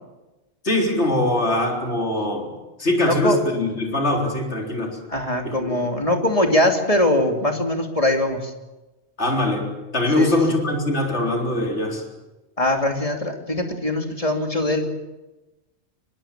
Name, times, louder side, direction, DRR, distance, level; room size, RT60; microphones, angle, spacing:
voice 1, 0.6-2.5 2.8-5.0 5.4-5.8 9.2-12.0, left 1 dB, 65° left, 1 dB, 4.1 m, -22 dB
voice 2, 3.1-3.4 5.1-8.5 10.2-10.6 12.6-14.9, left 1 dB, 30° left, 3 dB, 2.9 m, -22 dB
23.0 x 23.0 x 7.5 m, 1.1 s
omnidirectional pair, 1.2 m